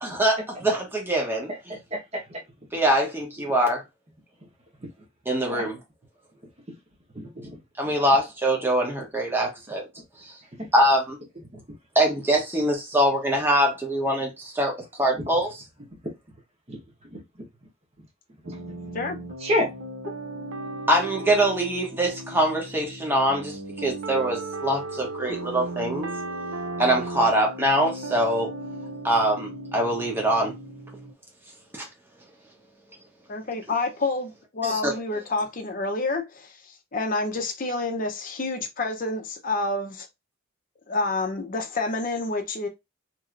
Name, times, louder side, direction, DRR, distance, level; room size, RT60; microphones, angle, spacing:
voice 1, 0.0-1.7 2.7-3.8 5.3-5.8 7.8-9.8 10.2-10.3 10.7-11.2 11.9-15.5 20.9-26.1 26.8-28.5 29.0-30.5 31.7-31.8 34.6-34.9, right 1 dB, 10° right, 0.9 m, -23 dB
voice 2, 1.5-2.4 5.5-5.6 7.1-7.6 7.9-8.0 10.6-10.7 16.7-16.8 17.1-17.2 18.5-18.6 19.4-19.7, left 1 dB, 30° right, 1.1 m, -29 dB
sound 1, 18.4-31.1, right 2 dB, 70° right, 0.5 m, -36 dB
voice 3, 33.3-40.1 40.9-42.7, left 3 dB, 40° left, 0.6 m, -28 dB
2.9 x 2.7 x 2.5 m
head